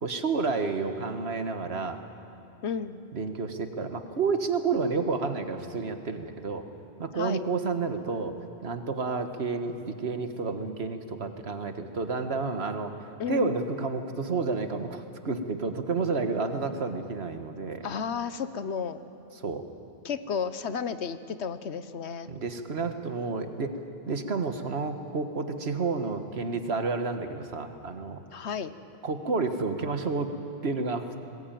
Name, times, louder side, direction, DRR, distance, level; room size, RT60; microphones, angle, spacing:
voice 1, 0.0-2.0 3.1-6.6 7.0-8.3 8.6-12.9 13.3-17.8 19.4-19.6 22.3-23.8 24.1-28.2 29.0-30.3 30.6-31.1, right 4 dB, 75° right, 7 dB, 1.6 m, -30 dB
voice 2, 2.6-3.0 7.2-7.4 13.2-13.5 17.8-19.0 20.0-22.3 28.3-28.7, left 6 dB, 90° left, 12 dB, 1.2 m, -32 dB
20.5 x 20.0 x 9.2 m, 2.9 s
omnidirectional pair, 1.1 m